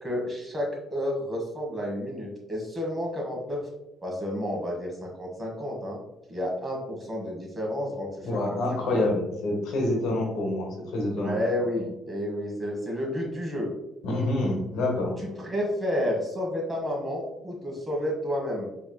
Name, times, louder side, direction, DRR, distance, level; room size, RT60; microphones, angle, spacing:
voice 1, 0.0-3.7 4.0-6.0 6.3-9.0 11.2-13.7 15.2-18.7, equal, 20° right, -1 dB, 1.3 m, -31 dB
voice 2, 8.2-11.4 11.8-11.9 14.0-15.2, left 1 dB, 85° left, 0 dB, 1.0 m, -27 dB
4.5 x 3.0 x 2.3 m, 0.92 s
cardioid pair, 100°, 0 cm